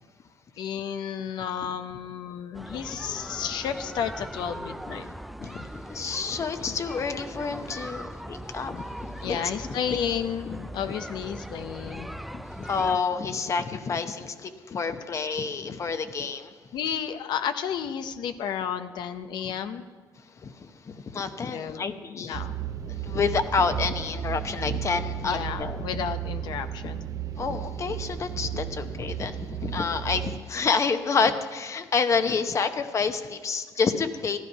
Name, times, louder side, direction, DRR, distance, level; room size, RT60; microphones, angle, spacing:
voice 1, 0.6-5.1 9.2-12.2 16.7-19.9 21.5-22.6 25.2-27.1, left 8 dB, 75° left, 9 dB, 0.7 m, -32 dB
sound 1, 2.5-13.0, equal, ahead, 0.4 m, -40 dB
voice 2, 5.4-9.4 12.3-16.5 20.4-22.5 22.9-25.8 26.8-26.9 27.3-34.4, left 5 dB, 40° left, 9 dB, 0.8 m, -29 dB
sound 2, 22.3-30.4, right 10 dB, 50° right, 0.7 m, -34 dB
14.0 x 11.5 x 5.4 m, 1.5 s
cardioid pair, 105°, 7 cm